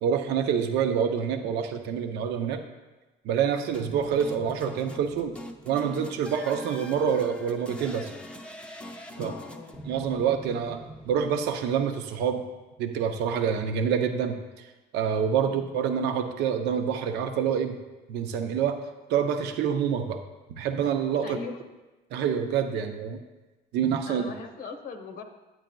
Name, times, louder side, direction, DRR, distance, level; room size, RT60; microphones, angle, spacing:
voice 1, 0.0-2.6 3.2-5.3 5.6-8.1 9.2-9.3 9.9-10.8 11.1-12.4 12.8-14.4 14.9-17.8 18.1-18.8 19.1-20.2 20.6-21.4 22.1-23.2 23.7-24.2, right 7 dB, 85° right, 6 dB, 0.6 m, -27 dB
sound 1, 3.7-12.0, equal, 5° left, 0.5 m, -43 dB
voice 2, 9.1-9.8 15.4-15.7 21.2-21.6 24.0-25.2, left 4 dB, 65° left, 4 dB, 0.8 m, -40 dB
8.9 x 8.8 x 2.3 m, 1.1 s
cardioid pair, 110°, 17 cm